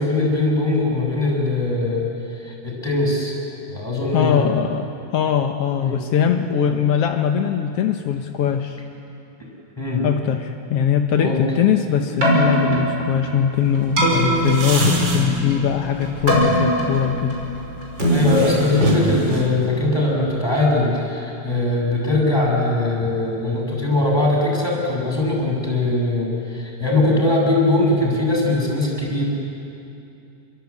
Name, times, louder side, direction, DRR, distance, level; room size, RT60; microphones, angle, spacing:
voice 1, 0.0-2.0 2.4-3.3 3.7-4.5 5.8-6.0 6.6-6.7 9.8-10.0 11.1-11.4 14.0-14.3 18.1-29.2, left 2 dB, 5° left, -2 dB, 6.9 m, -21 dB
voice 2, 4.1-8.8 10.0-17.4 18.7-19.0, left 8 dB, 75° left, 5 dB, 1.4 m, -21 dB
Keyboard (musical), 12.0-20.2, right 1 dB, 30° right, 6.2 m, -22 dB
sound 1, 13.5-19.7, right 3 dB, 45° right, 4.3 m, -34 dB
29.0 x 23.0 x 8.4 m, 2.7 s
omnidirectional pair, 4.1 m